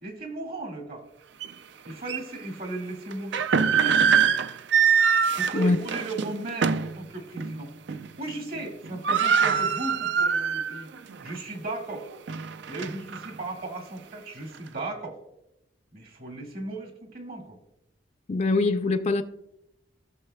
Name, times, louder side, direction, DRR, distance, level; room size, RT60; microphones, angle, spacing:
voice 1, 0.0-1.0 1.9-4.0 5.4-7.7 8.2-10.9 11.2-12.1 12.7-15.2 15.9-17.6, right 2 dB, 60° right, 1.9 m, -36 dB
sound 1, 1.4-1.5 2.1-2.2 3.1-7.0 7.4-7.5 7.9-8.3 8.6-8.7 8.8-10.8 11.2-11.3 11.9-13.3, right 6 dB, 75° right, 0.4 m, -23 dB
voice 2, 18.3-19.2, left 3 dB, 40° left, 0.4 m, -23 dB
17.5 x 6.5 x 2.2 m
head